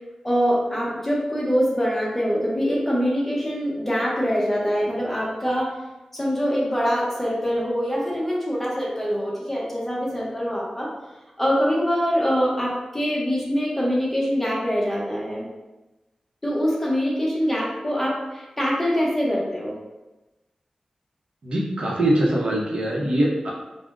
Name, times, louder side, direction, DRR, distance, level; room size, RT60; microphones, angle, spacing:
voice 1, 0.2-5.7 6.1-10.9 11.4-15.5 16.4-19.8, equal, 10° left, -4 dB, 0.7 m, -24 dB
voice 2, 21.4-23.5, right 1 dB, 55° right, -4 dB, 0.7 m, -22 dB
3.5 x 2.0 x 2.5 m, 1.1 s
wide cardioid pair, 120°, 2 cm